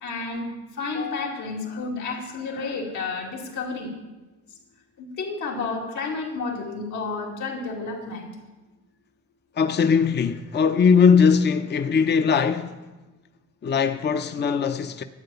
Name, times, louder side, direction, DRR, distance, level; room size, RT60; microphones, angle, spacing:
voice 1, 0.0-0.5 0.8-3.9 5.0-8.3, left 4 dB, 80° left, 2.6 m, -31 dB
voice 2, 9.6-12.9 13.6-15.0, left 6 dB, 35° left, 0.7 m, -20 dB
12.0 x 9.1 x 7.0 m
cardioid pair, 90°, 30 cm